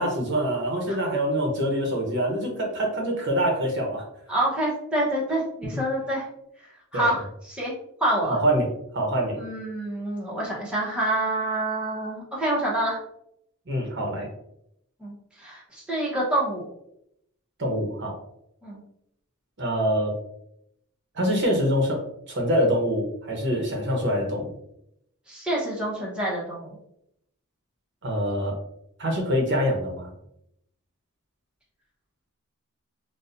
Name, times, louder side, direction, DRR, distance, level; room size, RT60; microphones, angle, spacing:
voice 1, 0.0-4.0 6.9-7.1 8.3-8.7 8.9-9.4 13.7-14.3 17.6-18.2 19.6-20.1 21.1-22.0 22.3-24.5 28.0-28.6 29.0-30.1, equal, 55° right, 0 dB, 0.9 m, -25 dB
voice 2, 4.3-6.3 6.6-7.7 8.0-8.4 9.4-13.0 15.0-16.7 18.6-18.8 25.3-26.8, right 1 dB, 5° right, -7 dB, 0.9 m, -27 dB
4.1 x 2.3 x 2.6 m, 0.76 s
head